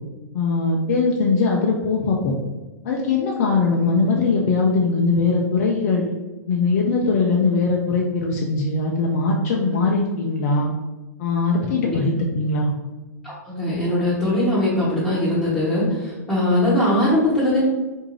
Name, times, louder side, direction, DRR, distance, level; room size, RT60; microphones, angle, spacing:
voice 1, 0.3-2.3 2.8-6.0 6.5-10.7 11.2-12.7, left 3 dB, 55° left, -1 dB, 0.4 m, -21 dB
voice 2, 13.2-17.7, left 1 dB, 5° left, -13 dB, 1.0 m, -20 dB
2.6 x 2.3 x 3.1 m, 1.2 s
hypercardioid pair, 110°, 9 cm